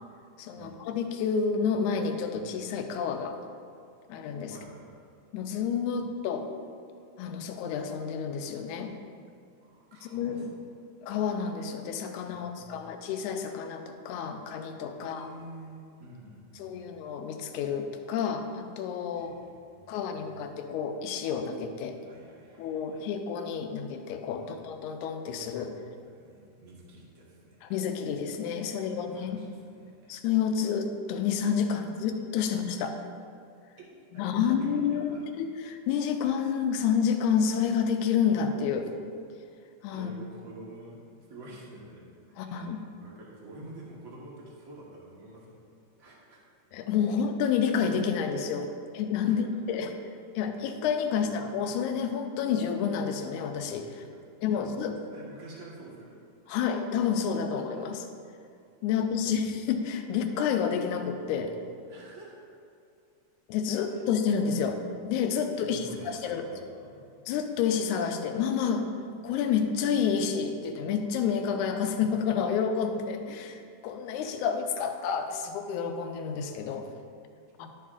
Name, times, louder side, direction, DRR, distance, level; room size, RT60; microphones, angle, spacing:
voice 1, 0.4-3.4 4.1-4.5 5.3-6.5 7.2-8.9 10.0-10.5 11.0-15.3 16.6-19.3 19.9-22.0 22.6-25.7 27.6-29.4 30.1-32.9 34.1-38.9 39.8-40.1 42.4-42.8 46.7-48.7 48.9-49.9 50.4-54.0 54.4-55.0 56.5-58.1 58.8-61.5 63.5-66.4 67.3-68.9 69.2-76.9 77.6-77.7, left 7 dB, 80° left, 6 dB, 2.0 m, -29 dB
voice 2, 4.5-5.0 9.6-10.5 12.3-12.9 15.0-16.9 19.1-20.4 22.0-23.0 24.4-24.5 26.1-27.6 28.7-30.1 33.8-33.9 34.3-35.2 39.9-41.0 41.3-42.7 43.0-45.6 46.0-46.4 49.2-49.3 49.7-49.8 51.2-51.5 54.1-56.2 56.4-56.6 58.9-59.2 61.9-62.4 63.7-63.8 65.4-67.0, right 1 dB, 50° right, -4 dB, 1.0 m, -49 dB
11.5 x 7.3 x 2.4 m, 2.3 s
omnidirectional pair, 3.6 m